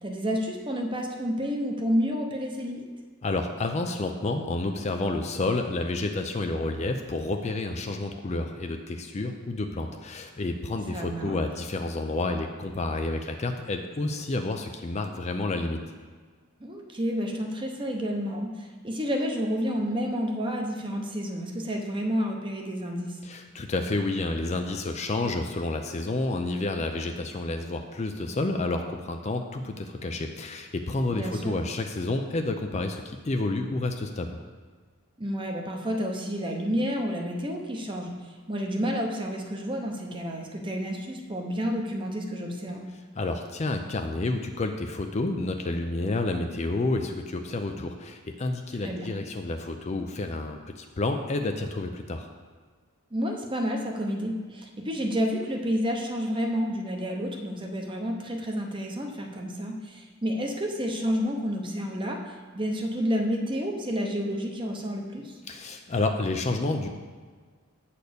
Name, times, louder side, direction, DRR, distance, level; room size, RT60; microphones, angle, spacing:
voice 1, 0.0-2.9 10.9-11.4 16.6-23.2 31.1-31.6 35.2-42.9 48.8-49.1 53.1-62.2 62.5-65.3, equal, 25° right, 2 dB, 0.9 m, -30 dB
voice 2, 3.2-15.8 23.2-34.3 43.1-52.3 65.5-66.9, left 2 dB, 30° left, 5 dB, 0.5 m, -30 dB
8.2 x 4.2 x 6.7 m, 1.5 s
head